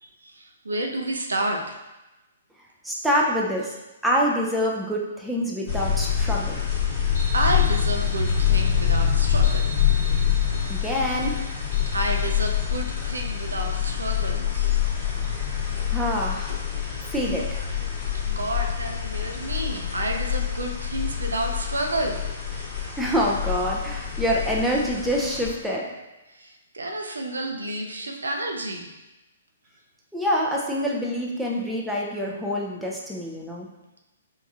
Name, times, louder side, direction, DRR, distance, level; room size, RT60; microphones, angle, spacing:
voice 1, 0.0-1.8 7.3-10.1 10.6-10.8 11.9-14.8 18.4-22.2 26.3-28.9, right 1 dB, 75° right, 3 dB, 0.5 m, -30 dB
voice 2, 2.8-3.7 4.0-6.6 10.7-11.4 15.4-16.6 17.1-17.7 23.0-25.9 30.1-33.7, equal, ahead, -4 dB, 0.5 m, -26 dB
sound 1, 5.7-25.5, left 9 dB, 35° left, 0.9 m, -26 dB
sound 2, 7.1-13.8, right 2 dB, 60° left, 0.8 m, -43 dB
4.6 x 2.3 x 2.7 m, 1.0 s
figure-of-eight pair, 120°, 0 cm